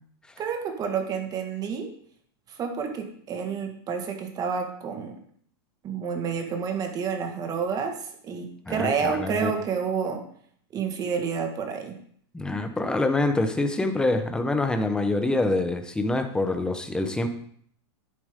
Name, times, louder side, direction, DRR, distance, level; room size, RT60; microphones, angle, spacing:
voice 1, 0.4-1.9 2.5-5.2 5.8-10.2 10.7-12.0, right 6 dB, 25° right, 4 dB, 1.8 m, -29 dB
voice 2, 8.7-9.5 12.3-17.3, left 2 dB, 5° left, 6 dB, 1.0 m, -25 dB
10.5 x 8.6 x 3.8 m, 0.62 s
supercardioid pair, 140°, 14 cm